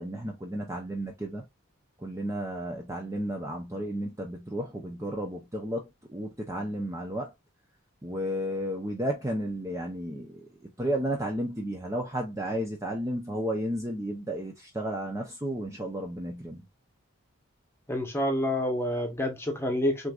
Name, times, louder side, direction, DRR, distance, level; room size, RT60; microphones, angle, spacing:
voice 1, 0.0-1.4 2.0-7.3 8.0-16.6, equal, 15° right, 0.6 m, -33 dB
voice 2, 17.9-20.1, left 1 dB, 10° left, 1.0 m, -28 dB
6.3 x 2.6 x 2.4 m
head